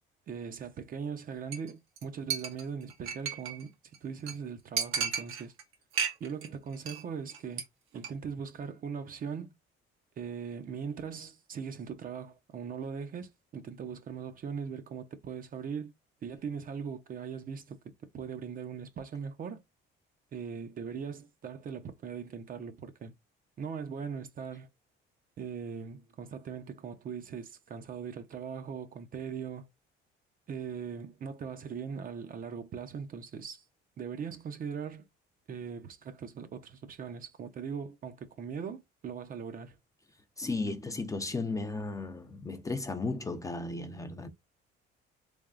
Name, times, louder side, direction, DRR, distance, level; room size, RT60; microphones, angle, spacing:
voice 1, 0.3-3.7 4.0-5.5 6.2-7.6 7.9-9.5 10.2-15.9 16.2-17.8 18.1-19.6 20.3-23.1 23.6-24.7 25.4-29.7 30.5-33.6 34.0-35.1 35.5-39.8, right 6 dB, 45° right, 0.6 m, -40 dB
Chink clink, 1.5-1.7 2.0-2.1 2.3-3.6 3.9-4.0 4.3-4.4 4.8-5.6 5.9-6.5 6.7-7.0 7.3-7.6 7.9-8.1, right 6 dB, 85° right, 1.2 m, -33 dB
voice 2, 40.4-44.3, left 3 dB, 15° left, 0.5 m, -35 dB
3.7 x 3.5 x 2.4 m
cardioid pair, 130°, 21 cm